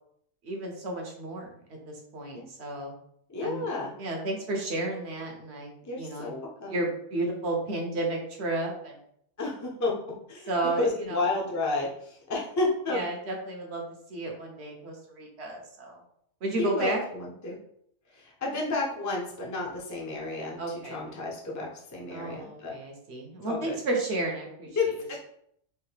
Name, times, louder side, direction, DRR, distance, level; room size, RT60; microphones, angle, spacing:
voice 1, 0.4-2.9 3.4-3.7 4.0-6.3 6.7-9.0 10.5-11.2 12.9-13.8 14.1-16.0 16.4-17.0 20.6-21.0 22.1-24.8, right 2 dB, 65° right, 1 dB, 1.2 m, -32 dB
voice 2, 3.3-3.9 5.8-6.8 9.4-9.9 10.3-10.5 10.8-13.0 16.6-17.6 18.1-22.7 23.4-23.8 24.8-25.2, left 3 dB, 20° left, -3 dB, 0.6 m, -31 dB
4.6 x 2.6 x 3.2 m, 0.70 s
omnidirectional pair, 1.2 m